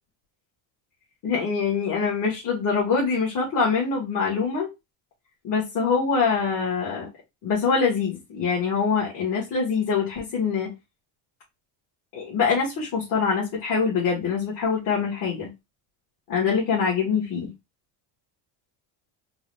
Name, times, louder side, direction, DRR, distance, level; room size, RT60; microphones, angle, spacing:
voice 1, 1.2-4.7 5.4-7.1 7.4-10.7 12.1-15.5 16.3-17.5, left 5 dB, 45° left, -4 dB, 1.4 m, -24 dB
3.9 x 2.4 x 3.1 m, 0.23 s
cardioid pair, 180°, 46 cm